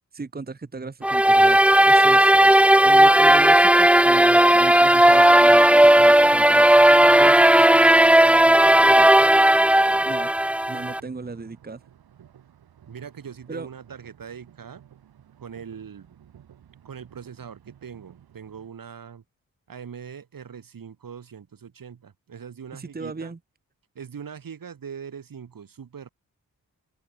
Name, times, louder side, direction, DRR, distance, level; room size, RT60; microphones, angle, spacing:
voice 1, 0.1-2.5 2.8-6.7 7.2-7.4 10.0-10.3 10.7-11.8 13.5-13.7 22.7-23.4, right 4 dB, 25° right, 1.2 m, -36 dB
sound 1, 1.0-11.0, right 1 dB, 5° right, 0.5 m, -15 dB
voice 2, 4.7-5.1 6.7-10.1 12.9-14.8 15.4-16.2 16.8-19.2 19.7-23.3 23.9-26.1, right 7 dB, 65° right, 2.8 m, -41 dB
sound 2, 5.4-18.7, right 9 dB, 90° right, 7.7 m, -53 dB
open air
cardioid pair, 50°, 36 cm